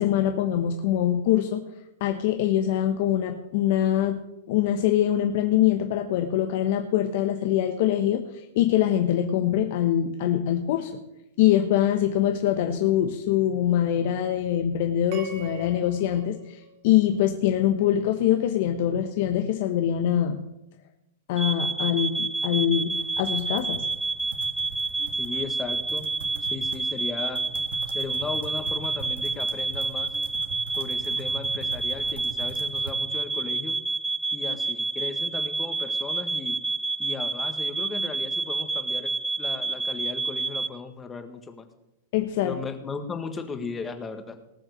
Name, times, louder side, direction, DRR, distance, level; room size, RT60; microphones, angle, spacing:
voice 1, 0.0-1.7 2.0-4.2 4.5-10.9 11.4-20.4 21.3-23.8 42.1-42.6, left 11 dB, 55° left, 6 dB, 1.0 m, -24 dB
sound 1, 15.1-17.5, equal, 50° right, 1.9 m, -43 dB
sound 2, 21.4-40.7, right 3 dB, 10° right, 0.7 m, -29 dB
sound 3, 22.9-32.9, right 4 dB, 70° right, 1.7 m, -42 dB
voice 2, 25.2-26.1 26.5-27.4 27.9-30.1 30.8-33.8 34.3-36.6 37.0-39.1 39.4-41.7 42.4-44.4, left 5 dB, 15° left, 7 dB, 1.6 m, -36 dB
18.5 x 6.3 x 6.5 m, 0.90 s
hypercardioid pair, 120°, 0 cm